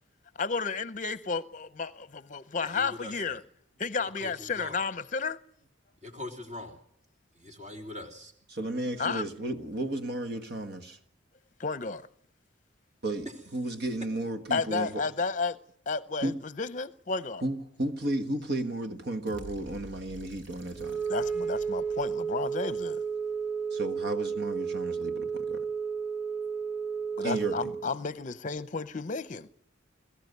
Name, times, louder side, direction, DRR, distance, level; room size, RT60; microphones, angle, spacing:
voice 1, 0.4-3.4 3.8-5.4 9.0-9.3 11.6-12.1 14.5-15.6 15.9-17.4 21.1-23.0 27.2-29.5, left 4 dB, 40° left, 0.7 m, -32 dB
voice 2, 2.6-3.1 4.2-4.3 4.6-4.8 6.0-6.8 7.4-8.3, left 1 dB, 35° right, 3.4 m, -41 dB
voice 3, 8.5-11.0 13.0-15.0 16.2-16.4 17.4-21.0 23.7-25.7 27.2-27.7, right 1 dB, 60° right, 1.5 m, -33 dB
sound 1, 19.3-23.4, equal, 80° right, 3.9 m, -50 dB
Wind instrument woodwind instrument, 20.7-27.9, right 6 dB, 5° right, 3.1 m, -32 dB
22.0 x 14.5 x 9.4 m
head